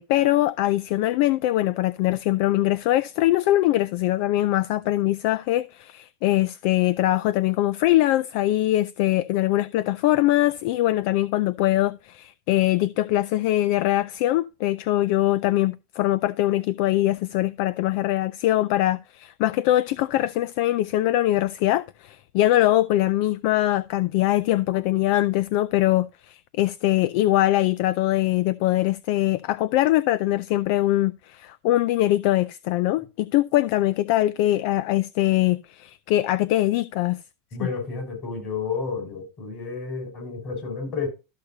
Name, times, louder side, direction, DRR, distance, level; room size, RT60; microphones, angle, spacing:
voice 1, 0.0-37.2, left 15 dB, 60° left, 0.4 m, -22 dB
voice 2, 37.5-41.1, left 5 dB, 40° left, 5.4 m, -31 dB
13.0 x 6.6 x 2.8 m
supercardioid pair, 140°, 0 cm